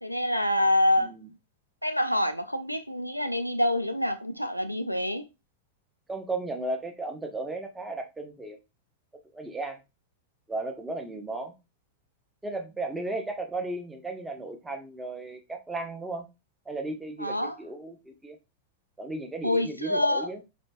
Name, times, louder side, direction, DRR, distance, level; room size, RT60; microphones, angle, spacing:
voice 1, 0.0-1.1 1.8-5.2 17.2-17.6 19.4-20.3, left 1 dB, 90° left, 0.3 m, -26 dB
voice 2, 1.0-1.3 6.1-8.6 9.3-9.8 10.5-11.5 12.4-16.3 16.7-18.4 19.0-20.4, right 2 dB, 10° right, 0.7 m, -35 dB
4.2 x 2.6 x 2.2 m
figure-of-eight pair, 90°, 0 cm